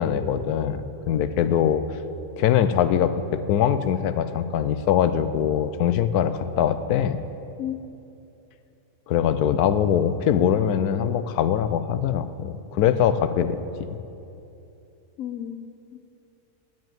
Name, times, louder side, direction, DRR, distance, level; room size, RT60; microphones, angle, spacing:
voice 1, 0.0-1.8 2.4-7.2 9.1-13.9, left 9 dB, 85° left, 12 dB, 1.2 m, -22 dB
voice 2, 15.2-16.0, left 10 dB, 65° left, 8 dB, 1.0 m, -33 dB
10.5 x 9.2 x 9.2 m, 2.7 s
omnidirectional pair, 1.6 m